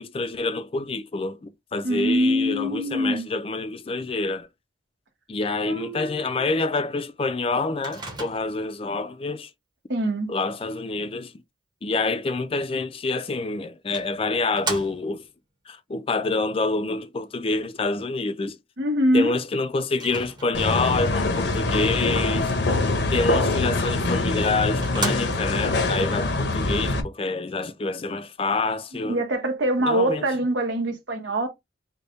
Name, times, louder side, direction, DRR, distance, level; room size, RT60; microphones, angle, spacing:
voice 1, 0.0-4.5 5.3-9.5 10.3-11.3 11.8-15.3 15.7-18.6 19.1-22.5 23.1-29.2 29.8-30.2, left 3 dB, 30° left, 0.4 m, -27 dB
voice 2, 1.8-3.2 5.6-6.5 9.9-10.3 18.8-19.4 28.9-31.5, equal, 80° right, 1.1 m, -24 dB
Microwave oven, 7.8-8.7 13.1-13.2 13.9-15.3 19.9-20.8 23.9-24.0 24.5-24.6 24.8-25.7, right 3 dB, 25° right, 1.0 m, -34 dB
sound 1, 20.5-27.0, left 2 dB, 65° left, 0.7 m, -24 dB
3.4 x 2.2 x 3.9 m
head